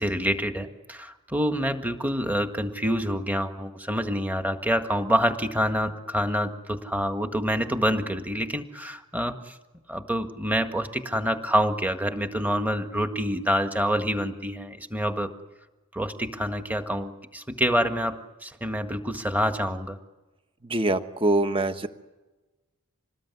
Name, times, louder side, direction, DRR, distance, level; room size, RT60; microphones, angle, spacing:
voice 1, 0.0-9.6 9.9-15.3 15.9-20.0, equal, 10° right, 6 dB, 1.7 m, -27 dB
voice 2, 20.6-21.9, right 2 dB, 25° right, 9 dB, 1.3 m, -24 dB
27.0 x 20.0 x 9.7 m, 1.1 s
head